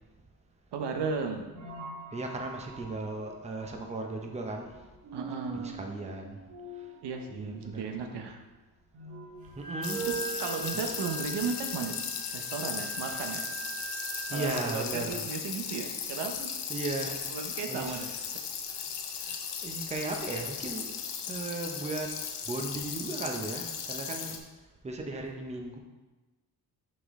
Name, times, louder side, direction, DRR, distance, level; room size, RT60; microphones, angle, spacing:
voice 1, 0.7-1.4 5.1-5.8 7.0-8.4 10.0-11.9 12.3-13.4 14.3-16.5 17.3-18.4 18.7-18.8, right 5 dB, 85° right, 3 dB, 0.9 m, -35 dB
sound 1, 1.5-11.2, right 4 dB, 40° right, 0.9 m, -44 dB
voice 2, 2.1-4.9 5.5-6.4 6.7-6.9 7.3-7.9 9.6-10.1 10.7-11.0 13.1-13.2 14.3-15.3 15.7-15.8 16.7-17.2 17.7-18.2 19.1-20.9 21.3-22.2 22.5-24.4 24.8-25.8, right 2 dB, 15° right, 2 dB, 0.6 m, -36 dB
Wind instrument woodwind instrument, 9.4-14.7, right 3 dB, 60° right, 1.8 m, -42 dB
sound 2, 9.8-24.4, left 7 dB, 85° left, 0.7 m, -37 dB
5.5 x 5.2 x 3.6 m, 1.2 s
wide cardioid pair, 140°, 40 cm